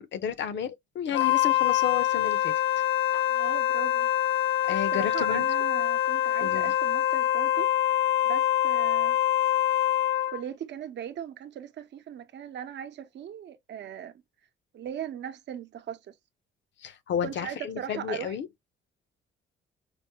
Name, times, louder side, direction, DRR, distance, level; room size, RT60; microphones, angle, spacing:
voice 1, 0.0-2.5 4.6-5.4 6.4-6.7 16.8-18.5, left 8 dB, 65° left, 0.9 m, -32 dB
Wind instrument woodwind instrument, 1.1-10.4, left 12 dB, 85° left, 0.5 m, -25 dB
voice 2, 3.3-4.1 4.9-9.2 10.3-14.2 14.7-16.2 17.2-18.4, right 9 dB, 60° right, 0.7 m, -39 dB
5.1 x 2.2 x 2.8 m
cardioid pair, 90°, 20 cm